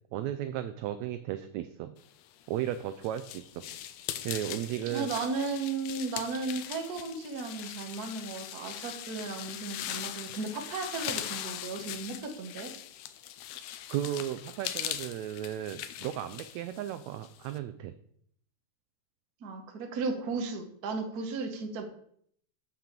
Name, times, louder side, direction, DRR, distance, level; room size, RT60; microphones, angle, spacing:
voice 1, 0.1-2.0 2.5-3.6 4.2-5.1 13.9-17.9, right 12 dB, 85° right, 10 dB, 1.6 m, -35 dB
sound 1, 2.4-17.6, left 11 dB, 85° left, 1.5 m, -40 dB
voice 2, 4.9-12.7 19.4-21.8, right 4 dB, 55° right, 4 dB, 1.1 m, -35 dB
7.3 x 5.8 x 6.6 m, 0.66 s
omnidirectional pair, 3.7 m